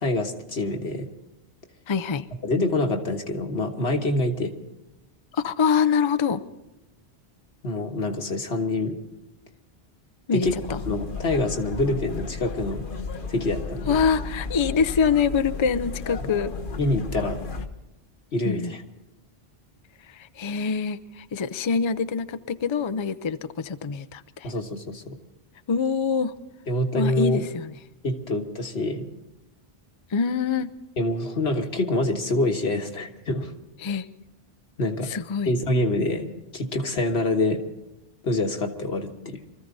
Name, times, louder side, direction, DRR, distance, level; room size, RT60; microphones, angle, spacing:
voice 1, 0.0-1.1 2.4-4.5 7.6-9.0 10.3-10.6 10.9-12.8 13.3-14.1 16.2-16.3 16.8-17.4 18.3-18.8 24.4-25.2 26.7-27.4 28.0-29.1 31.0-33.5 34.8-35.1 35.5-37.6 38.2-39.4, left 2 dB, 90° left, 3 dB, 1.8 m, -26 dB
voice 2, 1.9-2.3 5.3-6.4 10.3-10.8 13.9-16.5 18.4-18.7 20.1-24.5 25.7-26.3 26.9-27.7 30.1-30.7 33.8-34.1 35.0-35.5, left 6 dB, 35° left, 12 dB, 0.5 m, -25 dB
sound 1, 10.4-17.7, left 4 dB, 55° left, 1.2 m, -34 dB
24.5 x 14.5 x 4.0 m, 0.98 s
omnidirectional pair, 1.0 m